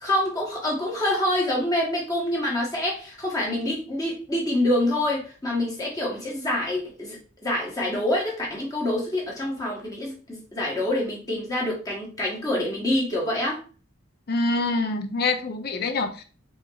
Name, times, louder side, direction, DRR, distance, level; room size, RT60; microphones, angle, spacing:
voice 1, 0.0-13.6, left 1 dB, 15° left, -3 dB, 1.0 m, -26 dB
voice 2, 14.3-16.2, left 3 dB, 50° left, 7 dB, 0.5 m, -25 dB
4.4 x 2.8 x 2.3 m, 0.37 s
head